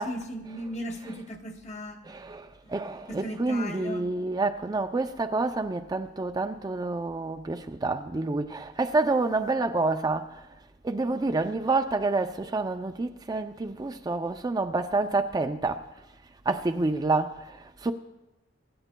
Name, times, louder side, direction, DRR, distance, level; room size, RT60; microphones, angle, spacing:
voice 1, 0.0-2.0 2.6-2.7 3.1-4.1, equal, 40° left, 1.1 m, -37 dB
voice 2, 2.0-10.4 10.8-15.8 16.5-17.9, right 3 dB, 20° right, 0.4 m, -28 dB
24.5 x 10.0 x 2.2 m
head